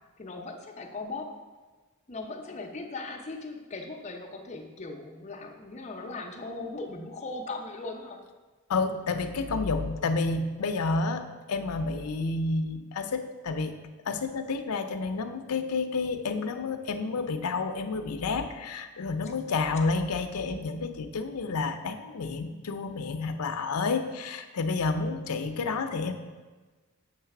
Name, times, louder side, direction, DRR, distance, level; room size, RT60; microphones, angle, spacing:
voice 1, 0.2-1.4 2.1-8.2, left 3 dB, 30° left, 2 dB, 0.6 m, -38 dB
voice 2, 8.7-13.8 14.1-26.1, left 4 dB, 85° left, 8 dB, 0.5 m, -30 dB
7.3 x 3.2 x 5.8 m, 1.3 s
head